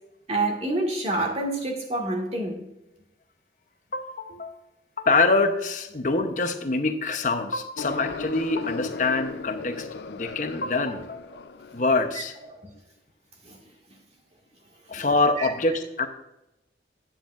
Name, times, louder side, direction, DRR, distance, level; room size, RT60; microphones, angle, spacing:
voice 1, 0.3-2.6 13.5-13.6 14.9-15.0 15.4-15.5, right 2 dB, 35° right, 1.8 m, -27 dB
voice 2, 3.9-4.6 5.0-11.3 11.7-12.4 14.9-16.1, left 3 dB, 45° left, 0.8 m, -25 dB
sound 1, 7.8-12.1, left 4 dB, 70° left, 0.4 m, -36 dB
10.0 x 8.7 x 2.5 m
head